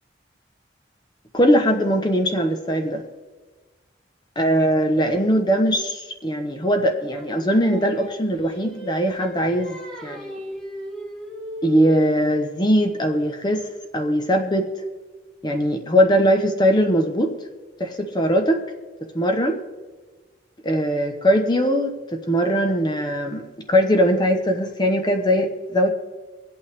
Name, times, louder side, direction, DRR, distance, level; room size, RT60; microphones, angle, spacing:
voice 1, 1.3-3.0 4.4-10.4 11.6-13.7 13.9-14.7 15.4-17.3 17.8-18.6 19.1-19.6 20.6-25.9, equal, 20° left, 5 dB, 0.8 m, -20 dB
Singing, 7.1-12.3, equal, 5° left, 1.5 m, -37 dB
24.5 x 8.5 x 3.3 m, 1.3 s
head